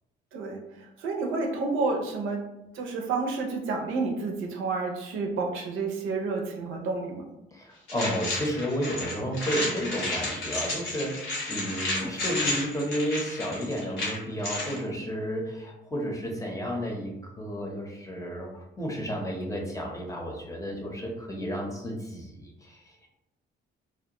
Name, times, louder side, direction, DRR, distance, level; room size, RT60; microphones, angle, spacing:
voice 1, 0.3-2.4 2.7-7.3, right 3 dB, 85° right, 1 dB, 0.5 m, -30 dB
voice 2, 7.5-22.9, equal, 15° left, 0 dB, 0.7 m, -32 dB
sound 1, 7.9-14.8, left 2 dB, 80° left, 1.1 m, -32 dB
2.5 x 2.1 x 2.8 m, 0.91 s
cardioid pair, 90°, 20 cm